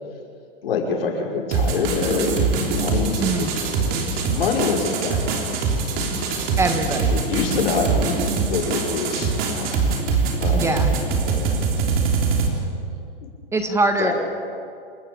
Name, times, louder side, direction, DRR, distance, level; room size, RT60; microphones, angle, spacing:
voice 1, 0.6-3.5 4.3-5.7 6.1-6.4 7.1-9.8 10.4-10.8 11.2-12.0 13.2-13.3 14.0-14.1, left 5 dB, 80° left, 0 dB, 5.7 m, -26 dB
sound 1, 1.5-12.5, right 4 dB, 30° right, 3.4 m, -23 dB
voice 2, 3.2-3.5 6.6-7.1 10.5-10.9 13.5-14.1, right 3 dB, 10° right, 6 dB, 1.4 m, -22 dB
27.5 x 15.0 x 8.8 m, 2.4 s
hypercardioid pair, 150°, 29 cm